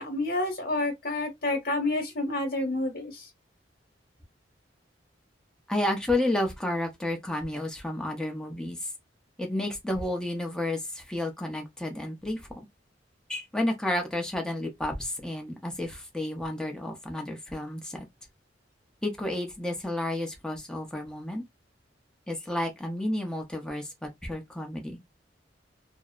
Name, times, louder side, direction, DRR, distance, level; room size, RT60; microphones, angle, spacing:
voice 1, 0.0-3.3, left 2 dB, 55° left, 1.1 m, -29 dB
voice 2, 5.7-8.9 9.4-12.4 13.3-18.1 19.0-21.4 22.3-25.0, left 1 dB, 5° left, 0.6 m, -31 dB
2.6 x 2.0 x 2.3 m
head